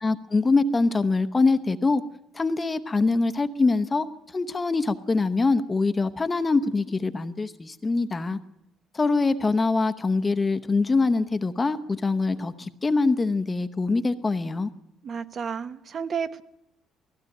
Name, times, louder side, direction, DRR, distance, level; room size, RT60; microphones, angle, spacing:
voice 1, 0.0-2.0 2.3-4.1 4.3-8.4 8.9-14.7, left 3 dB, 20° left, 0.9 m, -24 dB
voice 2, 15.0-16.4, right 6 dB, 40° right, 1.0 m, -31 dB
18.0 x 15.5 x 9.2 m
cardioid pair, 135°, 0 cm